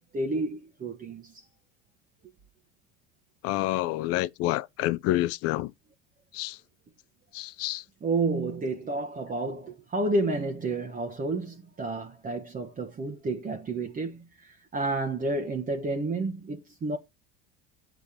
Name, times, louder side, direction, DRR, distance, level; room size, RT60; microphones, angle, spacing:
voice 1, 0.0-1.4 8.0-17.0, right 2 dB, 25° right, 1.3 m, -30 dB
voice 2, 3.4-5.7 6.3-6.6 7.3-7.8, left 16 dB, 50° left, 0.5 m, -28 dB
7.8 x 7.1 x 3.6 m
hypercardioid pair, 75°, 30 cm